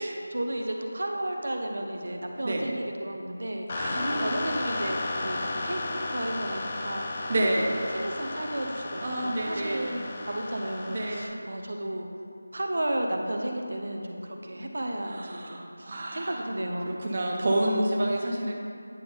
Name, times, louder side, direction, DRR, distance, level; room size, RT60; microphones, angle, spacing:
voice 1, 0.0-5.8 6.1-7.2 7.6-7.7 7.9-10.0 10.3-12.1 12.5-17.0, right 1 dB, 65° right, 3 dB, 0.8 m, -33 dB
sound 1, 3.7-11.3, left 2 dB, 25° left, 0.5 m, -34 dB
voice 2, 3.7-4.4 7.3-7.6 9.0-10.1 10.9-11.4 15.0-16.4 16.8-18.5, right 1 dB, 35° right, -2 dB, 0.6 m, -29 dB
9.2 x 3.5 x 5.2 m, 2.5 s
figure-of-eight pair, 175°, 0 cm